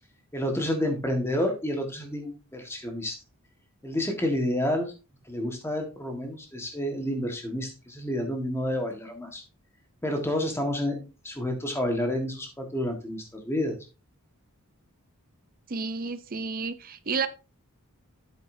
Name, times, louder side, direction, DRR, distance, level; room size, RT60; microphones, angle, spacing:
voice 1, 0.3-3.1 3.8-4.9 5.3-9.4 10.0-13.7, left 1 dB, 10° left, 1.6 m, -29 dB
voice 2, 15.7-17.3, right 4 dB, 40° right, 0.6 m, -31 dB
8.3 x 8.2 x 2.7 m
head